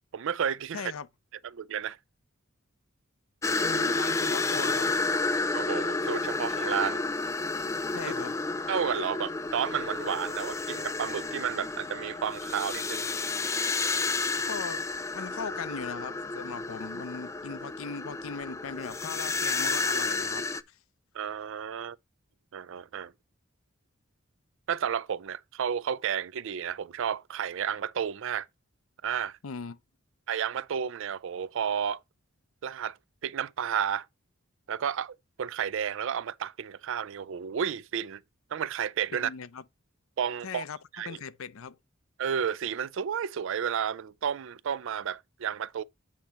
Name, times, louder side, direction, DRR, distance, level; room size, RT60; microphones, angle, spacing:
voice 1, 0.1-0.9 1.4-2.0 5.5-7.0 8.7-13.1 21.1-22.0 22.5-23.1 24.7-28.5 29.0-29.4 30.3-32.0 32.6-33.0 33.2-34.1 34.7-38.2 38.5-39.3 40.2-40.6 40.9-41.2 42.2-45.8, right 8 dB, 65° right, 0.4 m, -32 dB
voice 2, 0.7-1.1 3.5-4.9 7.9-8.3 14.5-14.8 15.1-20.8 29.4-29.8 39.1-39.6 40.4-40.8 41.1-41.8, left 5 dB, 80° left, 0.6 m, -39 dB
sound 1, 3.4-20.6, left 3 dB, 15° left, 0.3 m, -31 dB
8.4 x 2.9 x 5.6 m
head